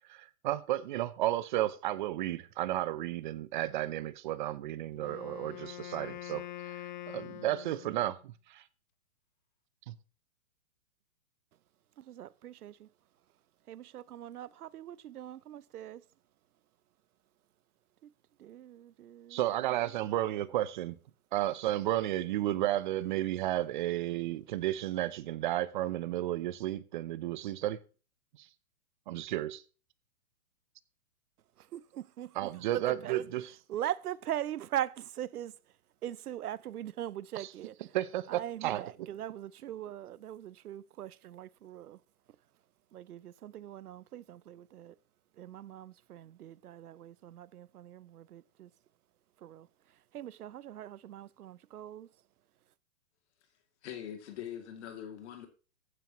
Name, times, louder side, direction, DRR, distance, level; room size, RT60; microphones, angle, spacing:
voice 1, 0.1-8.6 9.9-10.0 19.3-21.0 21.3-27.8 28.4-28.5 29.1-29.6 32.4-33.5 37.9-38.8, right 14 dB, 35° right, 0.6 m, -33 dB
Wind instrument woodwind instrument, 4.9-8.2, left 14 dB, 35° left, 0.5 m, -44 dB
voice 2, 12.0-12.9 13.7-16.1 18.0-18.1 18.4-19.9 31.7-33.3 33.7-38.0 38.3-42.0 42.9-45.0 45.3-48.7 49.4-52.2, right 11 dB, 85° right, 0.7 m, -41 dB
voice 3, 53.8-55.5, left 10 dB, 50° left, 2.6 m, -42 dB
14.5 x 9.4 x 3.0 m
hypercardioid pair, 140°, 44 cm